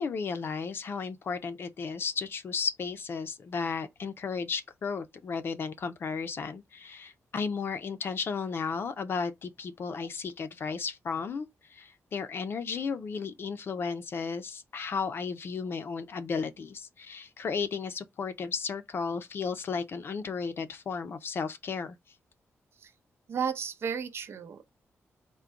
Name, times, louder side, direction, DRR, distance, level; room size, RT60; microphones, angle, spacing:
voice 1, 0.0-22.0, left 5 dB, 50° left, 0.5 m, -34 dB
voice 2, 23.3-24.8, right 7 dB, 60° right, 0.6 m, -33 dB
3.7 x 2.2 x 4.4 m
wide cardioid pair, 135°, 5 cm